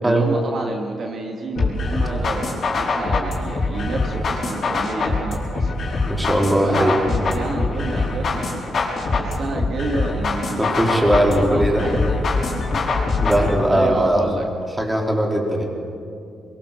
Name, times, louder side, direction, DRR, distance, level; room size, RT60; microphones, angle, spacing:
voice 1, 0.0-5.7 6.6-8.7 9.2-10.7 11.0-12.5 13.7-14.5, right 2 dB, 55° right, 1 dB, 2.6 m, -29 dB
sound 1, 1.6-13.6, left 3 dB, 50° left, 5.4 m, -23 dB
voice 2, 6.1-7.0 10.6-11.9 13.2-14.2 14.8-15.6, right 1 dB, 10° right, 0 dB, 4.4 m, -19 dB
23.0 x 22.5 x 7.7 m, 2.5 s
cardioid pair, 100°, 0 cm